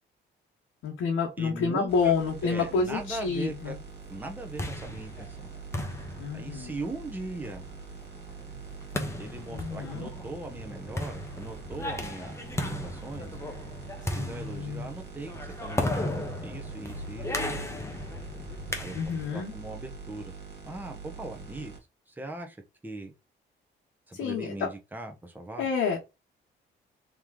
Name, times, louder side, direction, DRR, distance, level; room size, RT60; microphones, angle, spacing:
voice 1, 0.8-3.8 6.2-6.9 9.5-10.1 14.2-14.9 18.9-19.5 24.1-24.7 25.6-26.0, left 5 dB, 90° left, 1.1 m, -29 dB
voice 2, 1.4-2.1 2.4-3.8 4.1-5.5 6.3-7.7 9.2-13.4 14.0-17.7 18.8-19.0 19.3-20.3 20.6-21.7 22.1-23.1 24.1-25.7, right 2 dB, 10° right, 1.0 m, -40 dB
sound 1, 1.9-21.8, right 4 dB, 55° right, 1.9 m, -44 dB
sound 2, 4.2-19.4, left 1 dB, 15° left, 0.9 m, -36 dB
3.2 x 3.1 x 3.6 m
cardioid pair, 90°, 20 cm